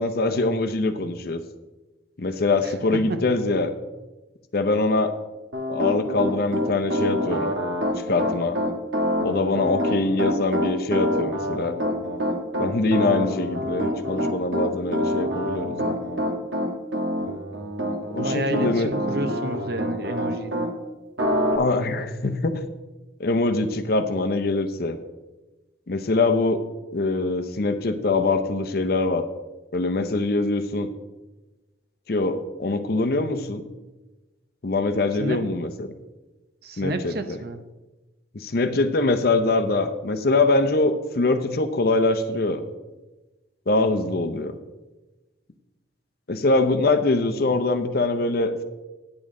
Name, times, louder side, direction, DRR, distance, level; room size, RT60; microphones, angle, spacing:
voice 1, 0.0-1.4 2.2-3.7 4.5-5.1 5.7-7.5 8.1-8.6 9.2-11.7 12.6-16.1 18.1-18.9 21.6-22.6 23.2-25.0 25.9-26.6 26.9-29.3 29.7-30.9 32.1-33.6 34.6-35.9 36.8-37.4 38.3-42.6 43.7-44.6 46.3-48.6, left 2 dB, 55° left, 8 dB, 0.6 m, -23 dB
voice 2, 2.6-3.2 18.2-20.7 35.2-35.4 36.6-37.6, right 1 dB, 55° right, 9 dB, 0.6 m, -30 dB
Piano, 5.5-20.7 21.2-21.6, equal, 80° right, 1.2 m, -26 dB
9.7 x 8.4 x 3.7 m, 1.1 s
head